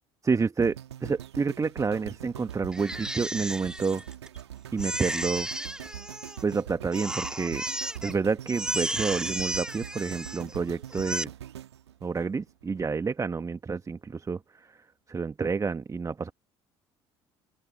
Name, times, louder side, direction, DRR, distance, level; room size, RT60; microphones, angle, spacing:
voice 1, 0.2-4.0 4.7-5.5 6.4-7.6 8.0-11.3 12.0-16.3, right 5 dB, 20° right, 1.4 m, -29 dB
sound 1, 0.6-12.8 13.4-13.5, right 11 dB, 75° right, 2.3 m, -43 dB
Crying sobbing, 2.7-4.4 4.8-6.6 6.9-8.1 8.5-10.6 10.9-11.2, right 1 dB, 5° right, 2.2 m, -34 dB
open air
figure-of-eight pair, 55°, 14 cm